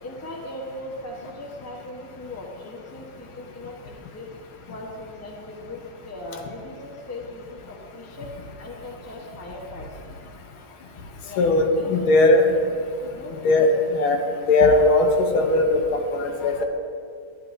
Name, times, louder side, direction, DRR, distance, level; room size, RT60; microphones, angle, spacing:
voice 1, 0.0-4.3 4.7-5.8 6.0-8.3 8.6-10.1 11.2-11.5 11.8-12.4 13.1-13.7, left 1 dB, 15° left, -2 dB, 0.6 m, -39 dB
voice 2, 11.4-12.4 13.4-13.7 13.9-14.2 14.5-16.6, left 2 dB, 85° left, 4 dB, 1.7 m, -18 dB
11.0 x 10.5 x 2.6 m, 2.4 s
omnidirectional pair, 2.2 m